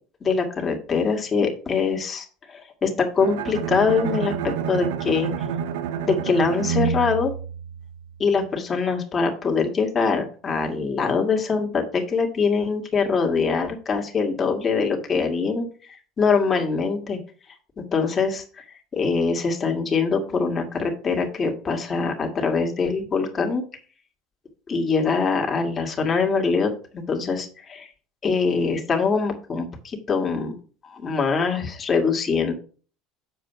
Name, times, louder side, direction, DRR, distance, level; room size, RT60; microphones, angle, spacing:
voice 1, 0.2-5.3 6.0-7.3 8.2-17.2 17.8-18.6 18.9-23.6 24.7-27.9 28.2-30.5 30.8-32.5, left 5 dB, 30° left, 2 dB, 2.3 m, -23 dB
Bowed string instrument, 3.2-8.2, right 8 dB, 80° right, 0.8 m, -28 dB
7.7 x 4.8 x 5.8 m, 0.39 s
hypercardioid pair, 85°, 0 cm